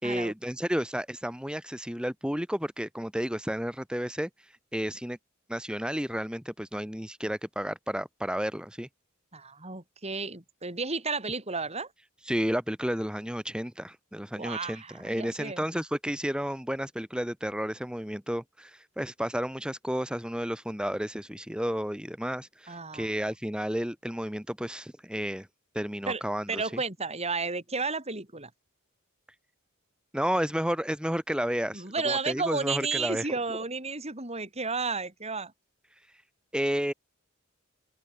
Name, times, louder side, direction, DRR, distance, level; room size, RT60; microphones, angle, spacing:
voice 1, 0.0-4.3 4.7-5.2 5.5-8.9 12.2-25.5 25.7-26.8 30.1-33.3 36.5-36.9, equal, 5° right, 4.3 m, -32 dB
voice 2, 9.3-11.9 14.4-15.6 22.7-23.1 26.1-26.2 26.5-28.5 31.7-35.5, right 4 dB, 30° right, 5.9 m, -32 dB
open air
head